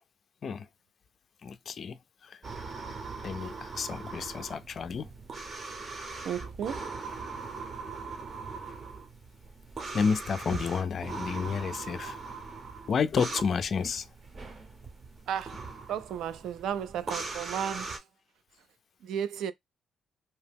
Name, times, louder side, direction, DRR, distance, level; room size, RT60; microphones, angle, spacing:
voice 1, 1.4-2.0 2.2-2.4 3.2-5.1 9.9-12.2 12.9-14.1, left 6 dB, 50° left, 0.3 m, -30 dB
sound 1, 2.4-18.0, right 4 dB, 40° right, 0.7 m, -40 dB
voice 2, 6.3-6.8 15.3-15.5 15.9-17.9 19.1-19.5, right 9 dB, 80° right, 0.3 m, -33 dB
2.7 x 2.0 x 3.4 m
cardioid pair, 90°, 0 cm